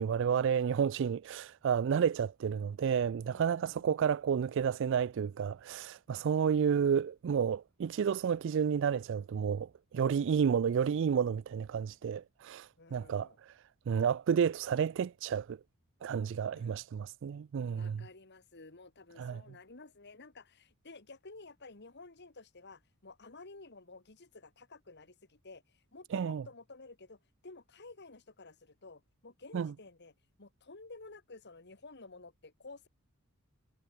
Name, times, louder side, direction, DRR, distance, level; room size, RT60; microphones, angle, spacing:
voice 1, 0.0-15.6 16.0-18.0 19.2-19.4 26.1-26.4 29.5-29.7, right 7 dB, 55° right, 0.3 m, -31 dB
voice 2, 3.3-4.0 6.1-6.4 10.1-10.3 12.8-13.4 16.5-16.8 17.7-32.9, left 3 dB, 50° left, 1.8 m, -53 dB
head